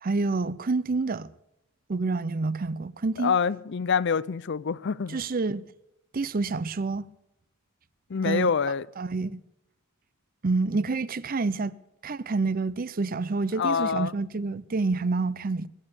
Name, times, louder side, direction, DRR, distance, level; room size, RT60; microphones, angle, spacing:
voice 1, 0.0-1.3 1.9-3.3 5.1-5.6 6.1-7.1 8.2-8.5 9.0-9.4 10.4-11.8 12.0-15.7, right 3 dB, 40° right, 0.6 m, -28 dB
voice 2, 3.2-5.2 8.1-8.9 13.6-14.2, left 6 dB, 55° left, 0.5 m, -26 dB
22.0 x 8.8 x 7.0 m
head